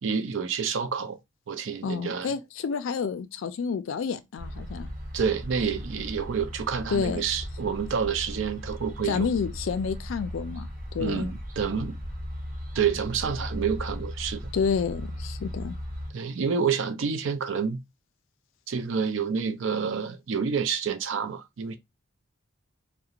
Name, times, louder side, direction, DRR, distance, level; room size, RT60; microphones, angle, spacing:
voice 1, 0.0-1.2 1.5-2.3 5.1-9.3 11.0-12.0 12.7-14.5 16.1-17.8 18.7-21.7, right 6 dB, 70° right, 0.4 m, -28 dB
voice 2, 1.8-4.9 6.9-7.2 9.0-11.3 14.5-15.8, left 6 dB, 75° left, 0.4 m, -29 dB
sound 1, 4.4-16.1, equal, 45° right, 0.8 m, -37 dB
2.4 x 2.1 x 2.8 m
head